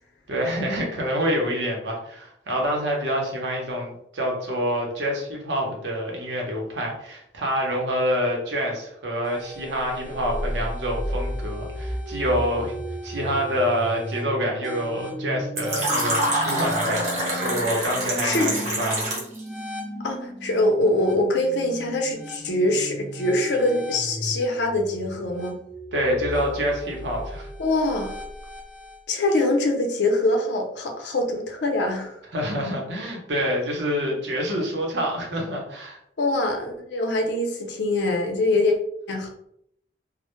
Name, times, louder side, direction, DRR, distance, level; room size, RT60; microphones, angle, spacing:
voice 1, 0.3-12.7 13.0-19.1 25.9-27.5 32.3-36.0, equal, 80° right, 0 dB, 0.7 m, -27 dB
sound 1, 9.2-29.0, equal, ahead, 0.4 m, -35 dB
Fill (with liquid), 15.6-19.4, right 1 dB, 40° right, 0.7 m, -26 dB
voice 2, 20.0-25.6 27.6-28.2 29.1-32.1 36.2-38.7 39.1-39.3, left 2 dB, 80° left, 2 dB, 0.5 m, -23 dB
2.0 x 2.0 x 2.9 m, 0.73 s
head